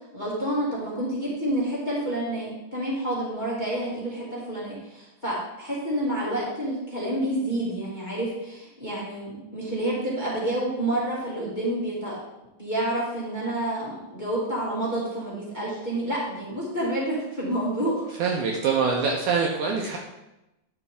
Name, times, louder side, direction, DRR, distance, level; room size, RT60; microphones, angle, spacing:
voice 1, 0.1-12.2 12.6-18.0 18.4-18.5, right 1 dB, 15° left, -7 dB, 1.8 m, -29 dB
voice 2, 18.2-20.0, right 5 dB, 75° right, 0 dB, 2.0 m, -24 dB
11.0 x 6.0 x 3.6 m, 0.93 s
omnidirectional pair, 4.2 m